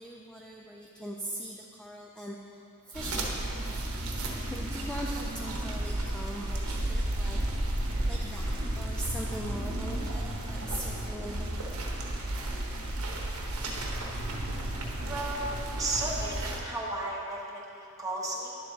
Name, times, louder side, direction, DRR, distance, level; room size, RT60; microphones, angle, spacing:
voice 1, 0.0-3.6 4.5-7.8 8.1-12.2, right 1 dB, 5° left, -1 dB, 0.4 m, -41 dB
sound 1, 2.9-16.6, right 1 dB, 80° right, 1.0 m, -33 dB
voice 2, 15.1-15.5 15.8-18.5, right 2 dB, 15° right, -4 dB, 1.1 m, -34 dB
10.5 x 7.3 x 2.8 m, 2.8 s
head